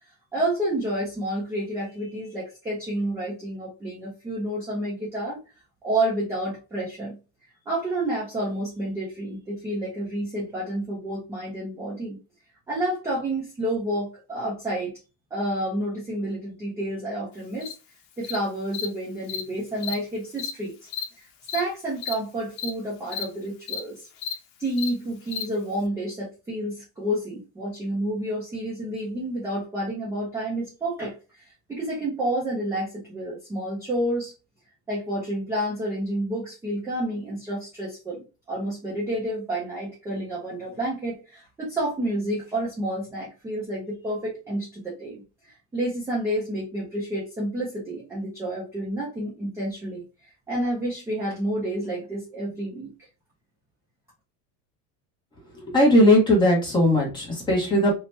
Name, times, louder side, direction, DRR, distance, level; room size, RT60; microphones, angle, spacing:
voice 1, 0.3-5.4 5.8-7.2 7.7-12.2 12.7-14.9 15.3-17.7 18.2-20.7 21.2-21.3 21.5-24.1 24.6-31.4 31.7-34.3 34.9-45.2 45.7-50.0 50.5-52.9, right 1 dB, 5° right, -6 dB, 0.5 m, -29 dB
Cricket, 17.6-17.7 18.2-18.4 18.7-18.9 19.3-19.4 19.8-19.9 20.4-20.5 20.9-21.0 21.5-21.6 22.0-22.1 22.6-22.7 23.1-23.2 23.7-23.8 24.2-24.3 24.8-24.9 25.3-25.4, left 8 dB, 65° left, 0.7 m, -31 dB
voice 2, 55.7-57.9, left 1 dB, 10° left, -2 dB, 0.8 m, -18 dB
2.8 x 2.2 x 2.9 m, 0.30 s
cardioid pair, 165°, 40 cm